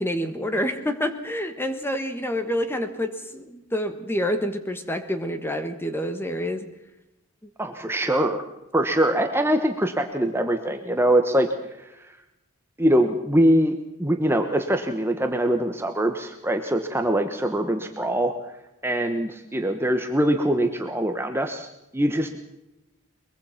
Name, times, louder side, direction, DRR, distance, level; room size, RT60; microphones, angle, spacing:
voice 1, 0.0-6.7, equal, 10° left, 8 dB, 1.4 m, -27 dB
voice 2, 7.6-8.4 8.7-11.5 12.8-18.3 18.8-21.7 21.9-22.4, right 1 dB, 10° right, 5 dB, 1.2 m, -23 dB
22.5 x 22.0 x 5.8 m, 0.91 s
head